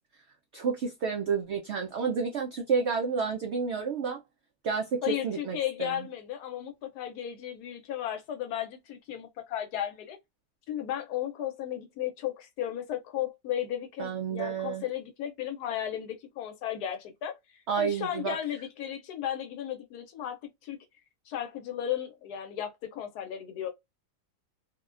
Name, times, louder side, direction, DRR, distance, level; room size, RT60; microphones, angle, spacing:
voice 1, 0.5-4.2 4.6-6.1 14.0-14.8 17.7-18.4, right 5 dB, 80° right, 0.6 m, -30 dB
voice 2, 5.0-10.2 10.7-20.4 20.6-20.8 21.3-23.7, left 11 dB, 75° left, 1.1 m, -35 dB
3.4 x 2.2 x 2.4 m
omnidirectional pair, 1.7 m